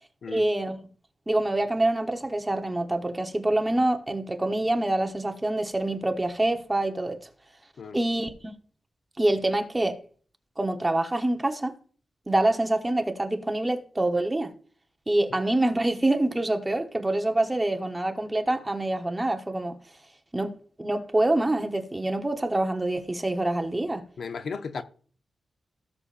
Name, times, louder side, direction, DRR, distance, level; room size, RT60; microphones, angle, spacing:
voice 1, 0.3-0.8 1.3-7.2 7.9-8.5 9.2-10.0 10.6-11.8 12.3-14.5 15.1-19.8 20.3-20.5 20.8-24.0, right 1 dB, 15° right, 1.1 m, -26 dB
voice 2, 24.2-24.8, left 5 dB, 65° left, 0.8 m, -35 dB
17.5 x 6.9 x 2.5 m
wide cardioid pair, 140°, 0 cm